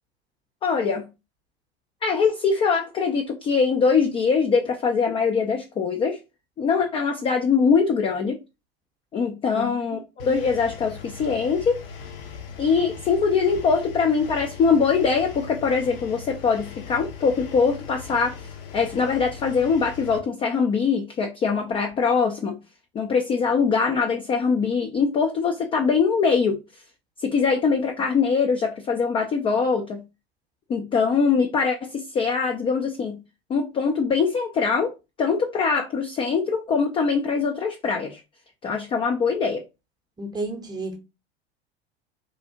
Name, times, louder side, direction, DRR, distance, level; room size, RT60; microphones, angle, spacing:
voice 1, 0.6-1.1 2.0-6.2 6.6-8.4 9.1-11.8 12.6-18.3 18.7-22.6 22.9-26.6 27.2-30.0 30.7-33.2 33.5-34.9 35.2-38.2 38.6-39.6, left 5 dB, 15° left, 0.3 m, -22 dB
voice 2, 9.5-10.0 40.2-41.0, right 1 dB, 10° right, 0.7 m, -32 dB
Engine, 10.2-20.2, left 6 dB, 60° left, 0.7 m, -39 dB
2.7 x 2.3 x 2.7 m
figure-of-eight pair, 80°, 32 cm